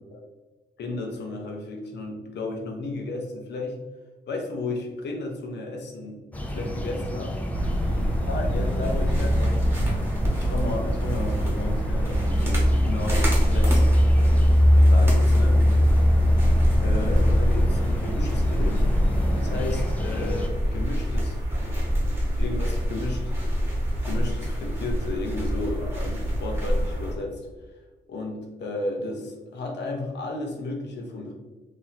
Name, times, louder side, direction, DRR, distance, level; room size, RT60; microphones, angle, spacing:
voice 1, 0.8-3.8 4.3-6.2 6.5-7.4 7.9-9.7 10.4-14.1 14.7-15.6 16.8-18.8 19.3-23.6 23.9-27.4 28.1-31.3, left 2 dB, 70° left, 1 dB, 0.8 m, -34 dB
sound 1, 6.3-20.5, left 1 dB, 10° left, 0.4 m, -32 dB
sound 2, 7.5-27.1, equal, 15° right, 1.1 m, -22 dB
2.9 x 2.8 x 4.0 m, 1.2 s
wide cardioid pair, 170°, 18 cm